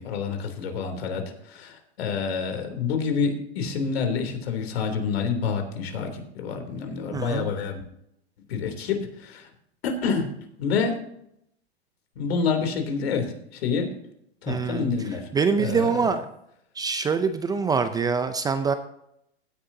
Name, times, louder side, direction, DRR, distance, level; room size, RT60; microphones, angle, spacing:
voice 1, 0.0-7.8 8.5-9.5 9.8-10.3 10.6-11.0 12.2-14.0 14.4-15.3 15.6-16.1, left 5 dB, 70° left, 5 dB, 3.3 m, -28 dB
voice 2, 7.1-7.5 14.5-14.9 15.3-16.3 16.8-18.7, right 5 dB, 10° right, 10 dB, 0.5 m, -24 dB
16.5 x 9.7 x 2.8 m, 0.74 s
hypercardioid pair, 130°, 32 cm